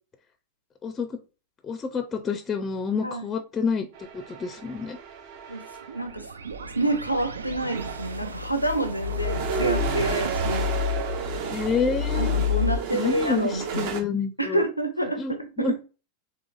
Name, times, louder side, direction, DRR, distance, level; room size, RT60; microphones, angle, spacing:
voice 1, 0.8-1.2 1.6-3.9 4.1-5.0 11.5-12.3 12.9-14.6 15.2-15.7, left 5 dB, 20° left, 8 dB, 0.4 m, -28 dB
sound 1, 3.9-6.2 7.1-7.2 7.5-14.0, right 6 dB, 50° right, 0.7 m, -33 dB
voice 2, 5.9-10.7 12.1-13.9 14.4-15.8, right 1 dB, 90° left, 7 dB, 0.5 m, -28 dB
sound 2, 5.9-12.8, left 6 dB, 70° right, 0.3 m, -30 dB
3.8 x 3.4 x 2.4 m, 0.32 s
figure-of-eight pair, 90°, 0 cm